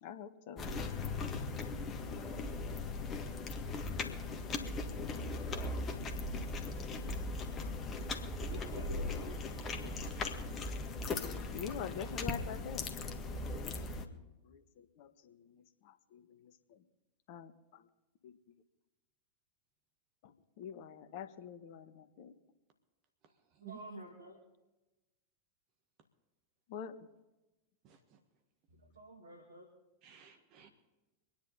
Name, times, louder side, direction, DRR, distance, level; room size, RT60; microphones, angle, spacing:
voice 1, 0.0-0.7 11.5-12.8 14.5-16.8 17.3-17.8 18.2-18.3 20.2-22.3 26.7-27.0, left 8 dB, 50° left, 10 dB, 1.2 m, -46 dB
sound 1, 0.6-14.1, left 3 dB, 25° left, 1.6 m, -38 dB
voice 2, 8.5-10.1 23.6-24.4 28.7-29.7, equal, 75° right, 1 dB, 2.2 m, -51 dB
voice 3, 27.8-28.2 30.0-30.7, right 10 dB, 40° right, 6 dB, 1.6 m, -54 dB
24.5 x 10.0 x 4.1 m, 1.0 s
figure-of-eight pair, 90°, 0 cm